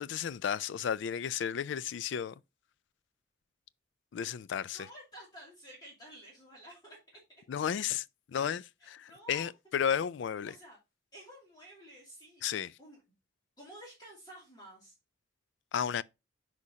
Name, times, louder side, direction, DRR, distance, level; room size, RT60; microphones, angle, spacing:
voice 1, 0.0-2.3 4.1-4.9 7.5-8.0 8.3-10.5 12.4-12.7 15.7-16.0, left 8 dB, 70° left, 0.3 m, -33 dB
voice 2, 4.7-7.0 7.3-7.4 8.8-9.5 10.4-10.8 11.1-12.5 12.8-13.0 13.6-14.9, right 1 dB, 20° left, 2.5 m, -52 dB
8.2 x 4.9 x 2.8 m
head